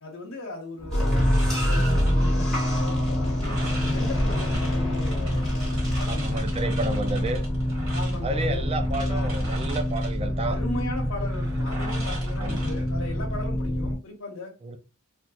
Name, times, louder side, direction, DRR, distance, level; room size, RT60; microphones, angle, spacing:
voice 1, 0.0-2.6 3.1-6.5 7.9-9.4 10.4-14.5, left 2 dB, 75° left, 0.8 m, -38 dB
sound 1, 0.8-9.7, left 1 dB, 20° left, 0.8 m, -39 dB
sound 2, 0.9-14.0, equal, ahead, 1.4 m, -25 dB
sound 3, 1.2-13.5, right 2 dB, 75° right, 1.7 m, -42 dB
voice 2, 6.0-7.4 8.2-10.6 12.4-12.7 14.6-14.8, right 2 dB, 30° right, 0.4 m, -31 dB
3.4 x 2.3 x 2.7 m
head